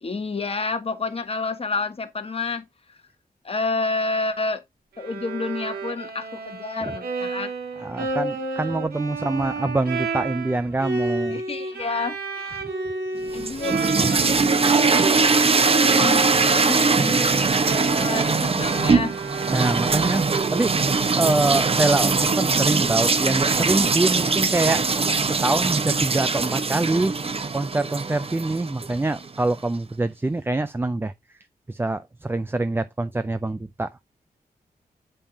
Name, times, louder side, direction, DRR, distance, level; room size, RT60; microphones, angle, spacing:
voice 1, 0.0-2.6 3.4-4.6 5.0-7.5 7.8-7.9 11.3-12.6 13.3-14.6 15.0-15.3 15.7-16.3 16.5-17.4 17.9-19.1, left 3 dB, 40° left, 1.4 m, -29 dB
Bowed string instrument, 5.0-14.3 14.6-20.4, right 3 dB, 80° right, 2.1 m, -31 dB
voice 2, 7.8-11.4 14.0-14.1 19.5-20.7 21.1-24.8 25.3-27.1 27.5-31.1 31.7-33.9, right 2 dB, 15° right, 0.5 m, -25 dB
sound 1, 13.3-29.3, right 4 dB, 40° right, 0.9 m, -21 dB
8.4 x 5.5 x 2.8 m
cardioid pair, 85°, 16 cm